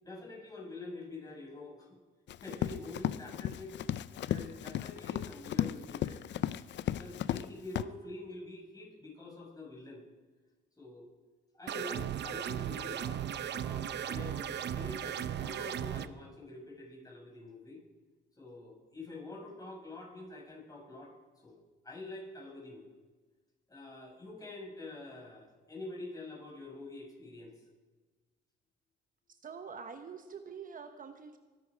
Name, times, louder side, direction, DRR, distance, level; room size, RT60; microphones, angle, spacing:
voice 1, 0.0-2.0 2.3-3.8 4.2-6.2 6.8-10.0 10.8-11.1 11.5-17.8 18.4-21.1 21.4-22.9 23.7-27.6, left 2 dB, 20° left, -2 dB, 6.6 m, -46 dB
Run, 2.3-7.5 7.7-7.8, left 11 dB, 65° left, 0.5 m, -35 dB
sound 1, 11.7-16.1, right 10 dB, 60° right, 0.7 m, -36 dB
voice 2, 29.3-31.4, right 6 dB, 45° right, 7 dB, 1.0 m, -46 dB
23.0 x 10.0 x 5.1 m, 1.3 s
cardioid pair, 90°, 20 cm